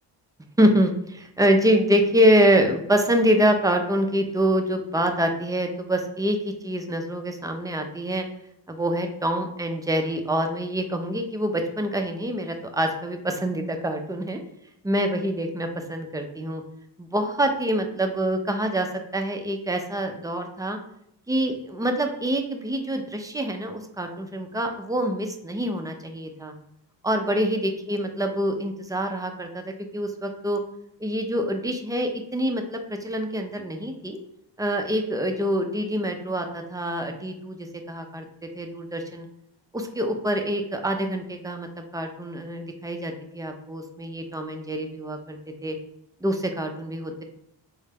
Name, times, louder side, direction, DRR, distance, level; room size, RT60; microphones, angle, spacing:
voice 1, 0.6-8.3 8.7-14.4 14.8-16.6 17.0-20.8 21.3-26.5 27.0-30.6 31.0-34.2 34.6-39.3 39.7-45.4 45.6-45.8 46.2-47.2, equal, 10° right, 4 dB, 0.3 m, -25 dB
3.8 x 2.2 x 3.3 m, 0.76 s
cardioid pair, 75°, 44 cm